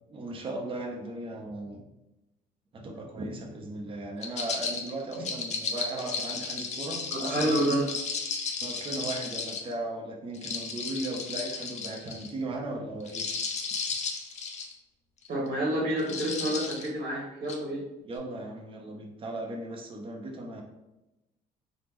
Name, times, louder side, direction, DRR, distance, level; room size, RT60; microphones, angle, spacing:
voice 1, 0.1-1.8 2.7-7.6 8.6-13.3 18.0-20.6, right 2 dB, 30° right, 1 dB, 0.5 m, -37 dB
sound 1, 4.2-9.7 10.3-12.3 13.0-14.7 15.2-15.5 16.0-16.9 17.5-17.6, left 5 dB, 45° left, 0.5 m, -34 dB
voice 2, 7.1-7.9 15.3-17.8, right 1 dB, 55° right, -3 dB, 0.9 m, -28 dB
3.4 x 2.0 x 3.1 m, 0.97 s
cardioid pair, 110°, 17 cm